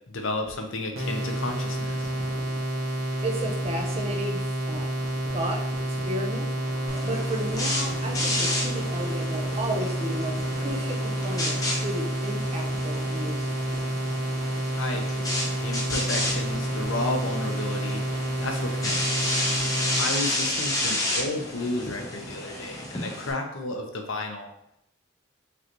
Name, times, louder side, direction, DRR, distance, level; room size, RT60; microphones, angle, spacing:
voice 1, 0.1-2.1 14.8-15.3 15.6-18.0 18.4-19.4 19.9-24.5, left 2 dB, 65° left, 3 dB, 0.7 m, -32 dB
sound 1, 1.0-20.1, right 1 dB, 80° right, 1.2 m, -29 dB
voice 2, 3.2-4.9 5.3-5.6 5.9-6.5 7.0-13.4, right 1 dB, 30° right, 1 dB, 0.6 m, -33 dB
sound 2, 6.6-11.6, right 1 dB, 55° right, 1.3 m, -45 dB
sound 3, 6.9-23.3, left 1 dB, 15° left, 0.7 m, -31 dB
5.1 x 3.2 x 3.0 m, 0.79 s
head